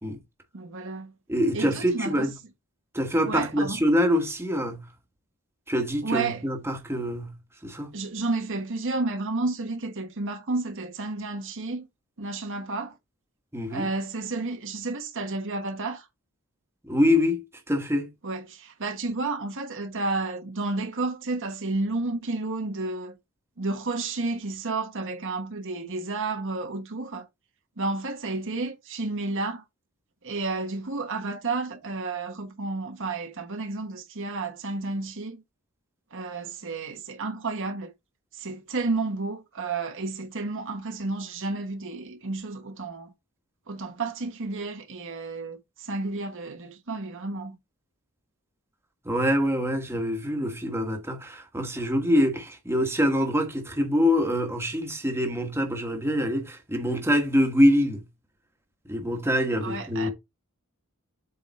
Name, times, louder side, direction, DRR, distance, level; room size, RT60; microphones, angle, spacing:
voice 1, 0.5-1.1 1.5-2.3 3.2-3.8 6.0-6.4 7.9-11.9 12.2-13.0 13.7-16.1 18.2-23.2 23.6-27.3 27.8-29.6 30.2-35.4 36.1-37.9 38.3-43.1 43.7-47.6 59.6-60.1, right 3 dB, 60° right, 1.3 m, -31 dB
voice 2, 1.3-2.3 2.9-4.9 5.7-7.4 7.6-7.9 13.5-13.9 16.8-18.1 49.0-58.0 58.9-60.1, equal, 10° right, 1.5 m, -25 dB
7.9 x 3.8 x 4.2 m
head